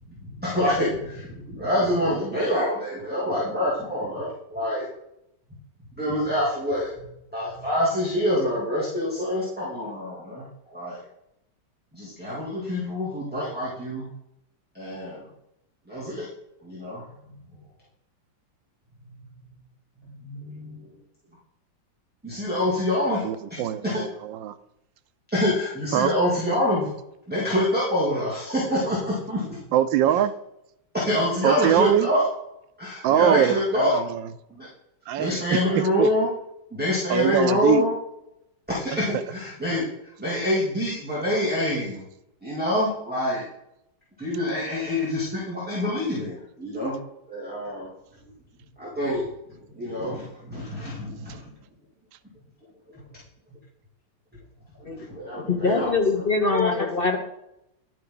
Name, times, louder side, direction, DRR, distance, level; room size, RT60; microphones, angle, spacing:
voice 1, 0.4-4.9 6.0-6.9 7.3-11.0 11.9-14.1 14.7-15.2 15.9-16.3 16.6-17.0 20.1-20.9 22.2-23.2 23.5-24.0 25.3-26.9 27.3-29.4 30.9-32.2 32.8-34.0 34.5-34.7 35.2-36.3 36.7-37.9 38.7-39.9 40.2-42.0 42.4-43.4 44.2-46.9 47.3-47.9 48.8-49.3 49.8-51.4 54.9-55.9, left 1 dB, 5° right, -8 dB, 2.6 m, -26 dB
voice 2, 23.2-24.5 25.9-26.1 29.7-30.3 31.4-32.1 33.0-34.3 35.1-36.1 37.1-37.8 38.9-39.2, right 11 dB, 90° right, 11 dB, 1.3 m, -23 dB
voice 3, 55.5-57.2, left 4 dB, 45° left, 3 dB, 0.7 m, -23 dB
11.0 x 8.1 x 3.9 m, 0.83 s
omnidirectional pair, 2.0 m